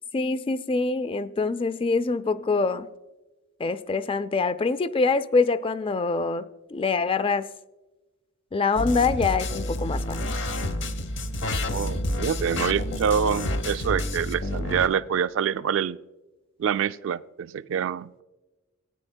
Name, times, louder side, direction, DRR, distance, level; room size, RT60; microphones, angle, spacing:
voice 1, 0.1-2.9 3.6-6.4 6.7-7.5 8.5-10.2, left 4 dB, 25° left, 15 dB, 0.3 m, -24 dB
sound 1, 8.8-14.9, left 1 dB, 60° left, 0.8 m, -29 dB
voice 2, 11.7-16.0 16.6-18.2, right 7 dB, 65° right, 14 dB, 0.3 m, -26 dB
17.5 x 9.8 x 2.2 m, 1.1 s
head